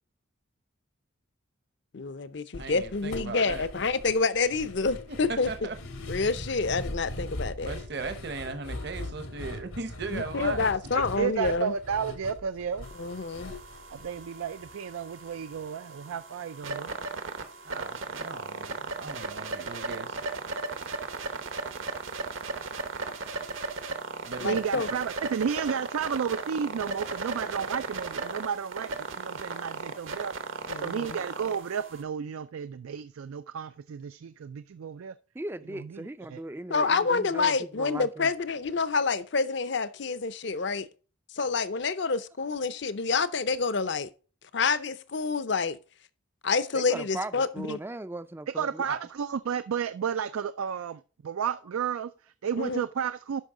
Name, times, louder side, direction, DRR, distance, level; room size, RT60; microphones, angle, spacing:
voice 1, 1.9-5.5 6.1-7.7 10.1-11.7 13.0-13.5 24.4-24.9 30.7-31.2 36.7-40.9 41.3-44.1 44.5-45.8 46.4-47.8 52.6-52.8, left 4 dB, 55° left, 0.6 m, -28 dB
sound 1, 2.5-14.8 15.1-15.2 15.5-15.7, left 1 dB, 85° left, 1.7 m, -40 dB
voice 2, 2.6-3.7 5.1-5.8 7.6-10.6 17.6-20.2 24.2-24.8 48.8-49.0, right 3 dB, 55° right, 0.9 m, -38 dB
voice 3, 10.9-12.9 13.9-17.0 24.4-35.1 35.7-36.4 48.5-53.4, right 7 dB, 90° right, 0.4 m, -32 dB
sound 2, 12.8-32.0, right 3 dB, 75° right, 1.1 m, -37 dB
voice 4, 35.3-38.3 46.7-48.8, right 1 dB, 10° right, 0.3 m, -38 dB
12.0 x 5.4 x 3.7 m
head